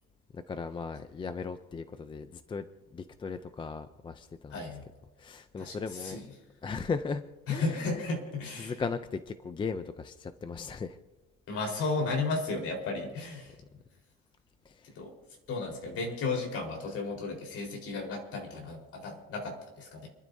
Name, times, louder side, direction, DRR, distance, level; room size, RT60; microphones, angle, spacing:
voice 1, 0.3-4.6 5.2-6.2 6.6-8.1 8.6-11.0 14.6-15.0, left 5 dB, 15° left, 10 dB, 0.4 m, -37 dB
voice 2, 4.5-4.8 5.6-5.7 6.0-6.2 7.5-8.7 11.5-13.5 14.9-15.1 15.5-20.1, left 3 dB, 50° left, 1 dB, 4.2 m, -34 dB
29.5 x 12.0 x 2.7 m, 1.2 s
cardioid pair, 165°, 30 cm